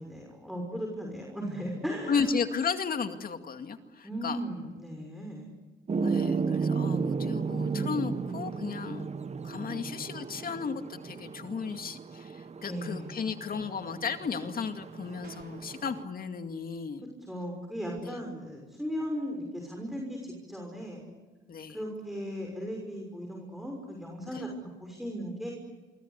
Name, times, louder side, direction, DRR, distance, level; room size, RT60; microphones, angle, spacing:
voice 1, 0.0-2.4 4.0-5.5 9.7-9.9 12.6-13.2 17.3-21.0 21.7-25.5, equal, ahead, 1 dB, 6.0 m, -37 dB
voice 2, 2.1-4.4 6.0-9.1 9.4-17.1 18.0-18.2 21.5-21.8 24.3-24.5, left 5 dB, 45° left, 7 dB, 2.3 m, -34 dB
sound 1, 5.9-16.0, right 5 dB, 35° right, 1.2 m, -34 dB
sound 2, 15.2-15.8, right 6 dB, 55° right, 3.8 m, -50 dB
26.0 x 24.5 x 8.3 m, 1.4 s
cardioid pair, 90°, 20 cm